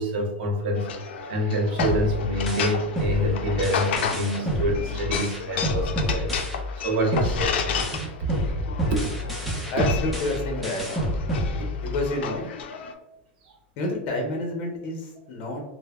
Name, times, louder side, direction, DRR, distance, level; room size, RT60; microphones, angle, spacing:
voice 1, 0.0-7.6 8.0-8.1 8.9-9.1 9.4-9.6, equal, 65° right, 1 dB, 0.8 m, -27 dB
sound 1, 0.7-12.9, left 6 dB, 80° left, 0.3 m, -32 dB
sound 2, 1.8-6.8 7.1-12.1, equal, ahead, 0.5 m, -29 dB
voice 2, 9.7-10.9 11.8-12.5 13.8-15.6, left 1 dB, 45° left, 2 dB, 0.7 m, -29 dB
3.2 x 2.1 x 2.3 m, 0.92 s
supercardioid pair, 155°, 6 cm